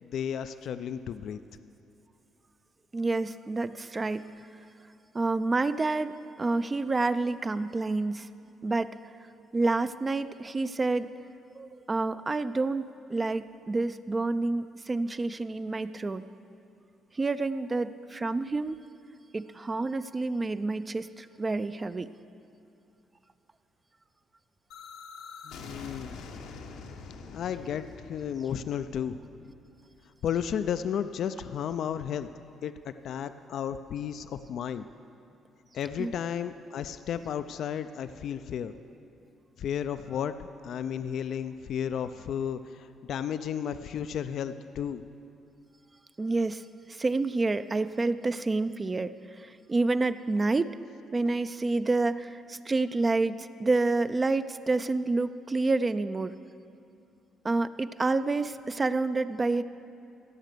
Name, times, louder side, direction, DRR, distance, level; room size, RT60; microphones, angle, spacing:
voice 1, 0.0-1.4 25.4-26.2 27.2-29.5 30.2-32.3 32.6-34.9 35.7-38.8 39.6-40.3 40.6-45.0, left 8 dB, 70° left, 11 dB, 0.3 m, -33 dB
voice 2, 2.9-4.3 5.1-8.3 8.6-8.9 9.5-11.1 11.5-16.2 17.1-18.8 19.3-22.1 36.0-36.1 46.2-50.8 51.1-56.3 57.4-59.6, right 3 dB, 30° right, 12 dB, 0.4 m, -28 dB
sound 1, 24.7-30.4, left 4 dB, 85° left, 0.9 m, -46 dB
16.5 x 5.8 x 6.7 m, 2.6 s
supercardioid pair, 70°, 0 cm